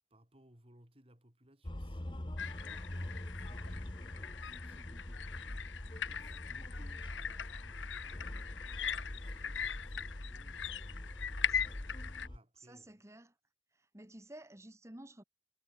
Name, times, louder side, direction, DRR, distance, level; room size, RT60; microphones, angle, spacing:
voice 1, 0.1-8.3 8.8-11.9 12.2-13.0, right 1 dB, 30° right, 4.1 m, -63 dB
sound 1, 1.6-12.4, left 1 dB, 25° left, 1.1 m, -44 dB
sound 2, 2.4-12.3, left 8 dB, 80° left, 1.2 m, -41 dB
voice 2, 12.6-13.3 13.7-15.2, right 1 dB, 15° right, 1.4 m, -53 dB
head